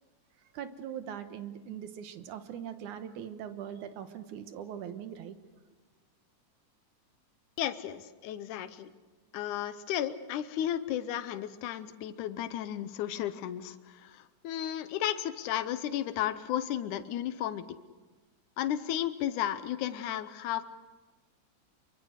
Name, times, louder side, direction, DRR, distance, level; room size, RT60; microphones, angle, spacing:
voice 1, 0.5-5.3, right 9 dB, 90° right, 9 dB, 2.7 m, -41 dB
voice 2, 7.6-8.9 9.3-17.6 18.6-20.6, left 11 dB, 90° left, 11 dB, 2.3 m, -34 dB
25.0 x 23.5 x 6.5 m, 1.3 s
omnidirectional pair, 3.4 m